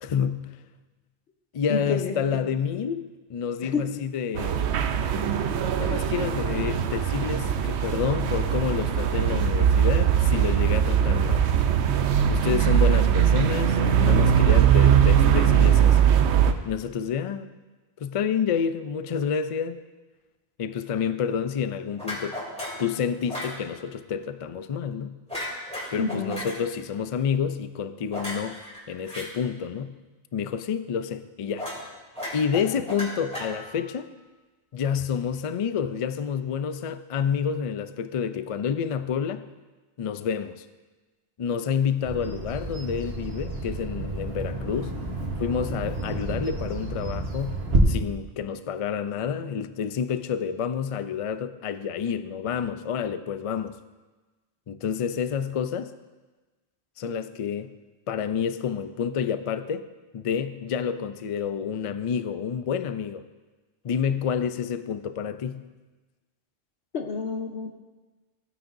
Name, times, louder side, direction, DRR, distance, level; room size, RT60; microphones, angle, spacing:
voice 1, 0.0-0.6 1.5-4.6 5.8-11.5 12.3-16.0 16.6-17.5 18.0-19.8 20.6-22.4 22.8-25.2 25.9-28.6 28.9-30.0 30.3-31.7 32.3-34.1 34.7-39.5 40.0-40.6 41.4-45.0 45.4-53.7 54.7-55.9 57.0-57.7 58.1-59.9 60.1-63.2 63.8-65.6, left 7 dB, 55° left, 11 dB, 0.3 m, -29 dB
voice 2, 1.7-2.1 3.6-3.8 26.0-26.3 66.9-67.7, left 5 dB, 85° left, 5 dB, 1.2 m, -28 dB
sound 1, 4.3-16.5, right 9 dB, 85° right, 0.9 m, -21 dB
sound 2, 22.0-22.9 23.3-23.6 25.3-26.6 28.1-29.2 31.6-31.8 32.1-33.9, left 1 dB, 5° left, 2.7 m, -35 dB
Bird vocalization bird call bird song, 42.0-47.8, right 3 dB, 65° right, 1.5 m, -30 dB
15.5 x 9.2 x 2.6 m, 1.2 s
omnidirectional pair, 1.1 m